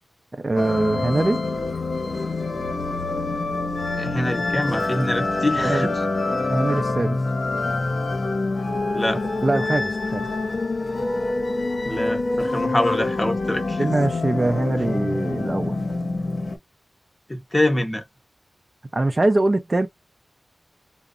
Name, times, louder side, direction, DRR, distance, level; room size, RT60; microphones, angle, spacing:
voice 1, 0.3-1.4 5.6-5.9 6.5-7.2 9.4-10.3 13.8-15.8 18.9-19.9, right 2 dB, 35° right, 0.5 m, -22 dB
sound 1, 0.6-16.6, left 2 dB, 60° left, 0.7 m, -26 dB
voice 2, 3.9-5.9 8.9-9.2 11.8-13.9 17.3-18.0, left 1 dB, 20° left, 0.8 m, -25 dB
2.7 x 2.0 x 2.5 m
wide cardioid pair, 70°, 0 cm